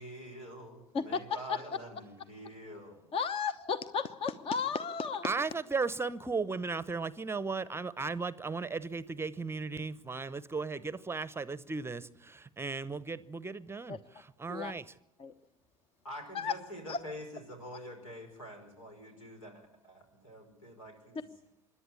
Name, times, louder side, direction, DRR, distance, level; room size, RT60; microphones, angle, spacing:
voice 1, 0.0-3.1 16.0-21.3, equal, 85° left, 5.2 m, -46 dB
voice 2, 3.1-5.3 13.9-14.0 14.5-14.7 15.2-15.3 16.3-16.5 16.9-17.0, left 5 dB, 35° left, 1.0 m, -33 dB
voice 3, 5.2-14.8, right 4 dB, 15° right, 0.8 m, -36 dB
26.0 x 11.5 x 9.8 m
figure-of-eight pair, 75°, 17 cm